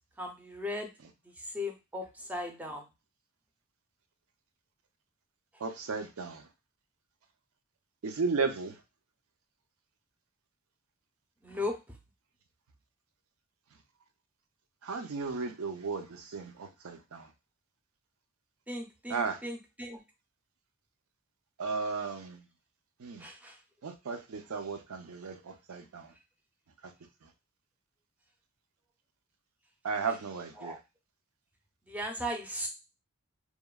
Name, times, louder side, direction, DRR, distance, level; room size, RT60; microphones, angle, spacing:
voice 1, 0.2-0.9 1.4-2.8 11.4-11.8 18.7-20.0 23.2-23.6 30.6-30.8 31.9-32.7, left 1 dB, 5° right, 2 dB, 0.5 m, -37 dB
voice 2, 5.6-6.4 8.0-8.7 14.8-17.3 19.1-19.4 21.6-22.4 23.0-23.2 23.8-25.4 25.7-26.1 29.8-30.8, right 4 dB, 75° right, 7 dB, 0.5 m, -34 dB
2.9 x 2.1 x 2.2 m, 0.26 s
head